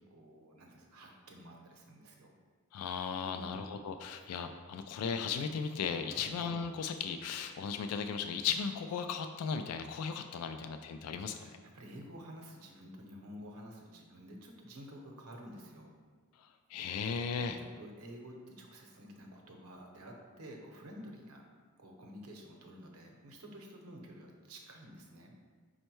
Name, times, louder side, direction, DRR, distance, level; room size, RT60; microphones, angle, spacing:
voice 1, 0.0-2.3 3.2-3.7 6.1-6.4 10.5-10.6 11.4-15.9 17.4-21.4 21.8-25.3, equal, 90° right, 1 dB, 0.7 m, -51 dB
voice 2, 2.7-11.4 16.4-17.6, left 6 dB, 90° left, 11 dB, 0.3 m, -36 dB
5.3 x 2.2 x 4.4 m, 1.5 s
head